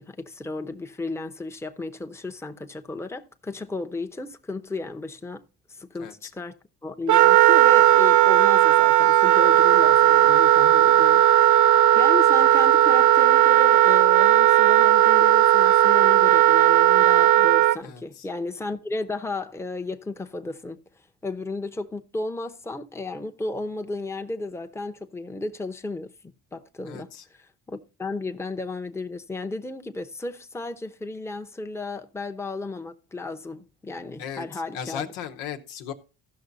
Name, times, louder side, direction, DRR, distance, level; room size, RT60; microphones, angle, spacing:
voice 1, 0.0-5.4 5.7-20.8 21.2-35.1, left 2 dB, 5° left, 0.7 m, -34 dB
voice 2, 6.0-6.3 17.8-18.3 26.9-27.2 34.2-35.9, left 8 dB, 90° left, 1.1 m, -37 dB
Wind instrument woodwind instrument, 7.1-17.8, right 12 dB, 40° right, 0.4 m, -16 dB
15.0 x 6.1 x 4.0 m
supercardioid pair, 70°, 48 cm